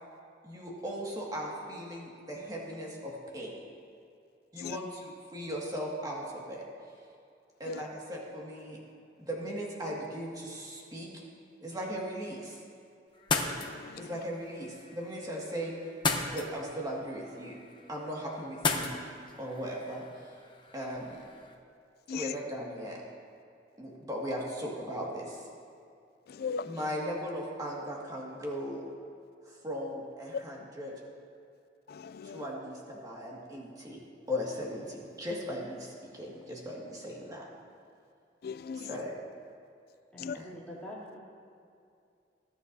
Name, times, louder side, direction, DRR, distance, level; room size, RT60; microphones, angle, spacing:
voice 1, 0.4-3.6 4.5-6.6 7.6-8.8 9.2-11.1 11.6-12.6 14.0-15.7 16.3-17.6 17.9-19.0 19.4-20.4 20.7-21.2 22.1-23.0 23.8-25.5 26.6-28.8 29.4-30.9 32.2-34.0 34.3-37.5 38.8-39.2 40.3-40.5, equal, 20° right, -3 dB, 2.1 m, -38 dB
sound 1, 13.1-21.5, left 4 dB, 25° left, 0.9 m, -37 dB
voice 2, 13.5-14.2 22.1-22.3 26.3-26.8 30.3-30.4 31.9-32.4 34.3-34.4 38.4-39.0 40.2-40.4, left 6 dB, 60° left, 15 dB, 0.4 m, -37 dB
voice 3, 40.1-41.2, left 1 dB, 5° left, -7 dB, 3.0 m, -45 dB
20.5 x 10.0 x 2.8 m, 2.5 s
head